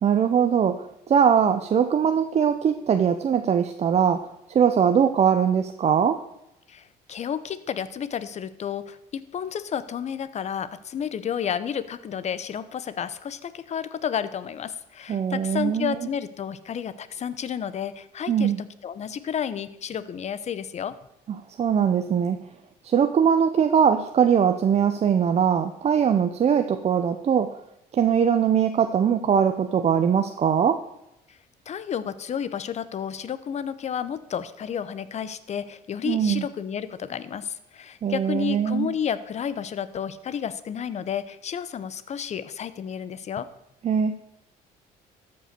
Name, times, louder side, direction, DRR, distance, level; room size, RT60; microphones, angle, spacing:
voice 1, 0.0-6.2 15.1-15.9 18.3-18.6 21.6-22.4 22.8-27.6 27.9-30.8 36.0-36.5 38.0-38.9 43.8-44.1, right 7 dB, 40° right, 8 dB, 0.7 m, -21 dB
voice 2, 6.7-20.9 31.3-31.4 31.7-43.5, left 8 dB, 40° left, 14 dB, 0.8 m, -31 dB
13.5 x 5.5 x 6.7 m, 0.85 s
cardioid pair, 110°, 17 cm